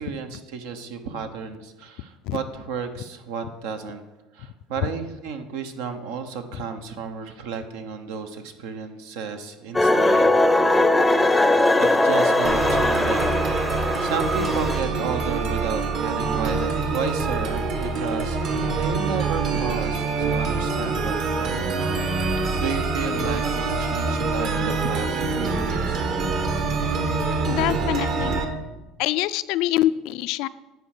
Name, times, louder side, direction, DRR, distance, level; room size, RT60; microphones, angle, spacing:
voice 1, 0.0-4.0 4.3-10.3 11.8-13.4 14.0-18.5 18.8-21.8 22.6-26.0, right 5 dB, 80° right, 7 dB, 1.0 m, -32 dB
sound 1, 9.7-14.8, left 2 dB, 10° left, 0.6 m, -20 dB
sound 2, 12.4-28.4, right 4 dB, 55° right, 1.4 m, -25 dB
voice 2, 27.5-28.4 29.0-30.5, left 14 dB, 70° left, 15 dB, 0.4 m, -24 dB
9.5 x 4.5 x 6.5 m, 1.1 s
supercardioid pair, 100°, 0 cm